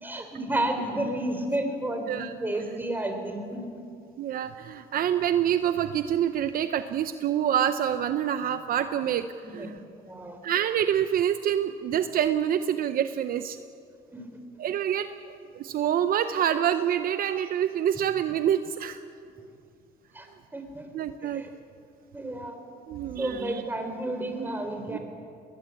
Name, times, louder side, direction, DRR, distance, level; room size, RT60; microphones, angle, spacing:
voice 1, 0.0-3.7 9.4-9.7 10.1-10.4 14.1-14.3 20.1-20.9 21.2-21.5 22.1-22.6 23.2-25.0, right 1 dB, 10° right, 5 dB, 3.9 m, -31 dB
voice 2, 4.2-9.3 9.5-9.7 10.4-13.6 14.6-19.0 20.9-21.4 22.9-23.6 24.9-25.0, right 10 dB, 60° right, 10 dB, 0.8 m, -26 dB
20.5 x 20.0 x 8.4 m, 2.4 s
cardioid pair, 110°, 17 cm